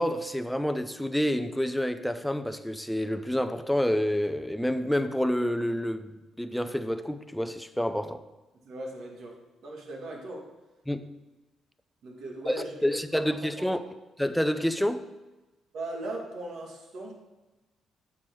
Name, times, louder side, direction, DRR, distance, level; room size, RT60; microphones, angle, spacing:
voice 1, 0.0-8.2 10.9-11.1 12.5-12.6 12.8-13.8 14.2-15.1, equal, 5° left, 0.5 m, -28 dB
voice 2, 8.6-10.5 12.0-13.8 15.7-17.1, right 2 dB, 75° right, 2.0 m, -39 dB
7.2 x 6.0 x 4.6 m
cardioid pair, 90°, 0 cm